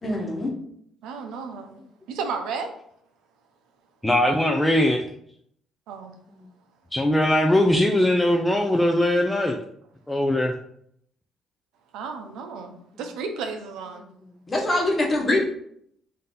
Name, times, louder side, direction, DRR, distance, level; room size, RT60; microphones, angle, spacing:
voice 1, 0.0-0.5 14.5-15.5, left 1 dB, 25° left, 0 dB, 1.1 m, -23 dB
voice 2, 1.0-1.8 2.1-2.7 5.9-6.1 7.7-7.8 11.9-14.0, right 5 dB, 85° right, 5 dB, 0.6 m, -33 dB
voice 3, 4.0-5.1 6.9-9.6 10.1-10.5, left 1 dB, 10° left, 2 dB, 0.4 m, -20 dB
3.7 x 2.7 x 3.8 m, 0.68 s
cardioid pair, 105°, 0 cm